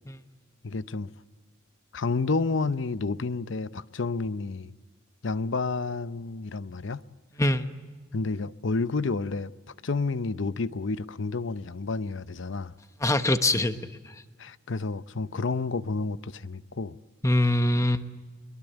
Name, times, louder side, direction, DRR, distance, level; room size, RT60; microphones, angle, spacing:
voice 1, 0.6-1.1 1.9-4.7 5.2-7.0 8.1-9.5 9.8-12.7 14.4-17.0, left 3 dB, 65° left, 0.7 m, -30 dB
voice 2, 13.0-13.8 14.0-14.1 17.2-18.0, left 1 dB, 15° left, 1.1 m, -23 dB
23.0 x 22.5 x 9.0 m
head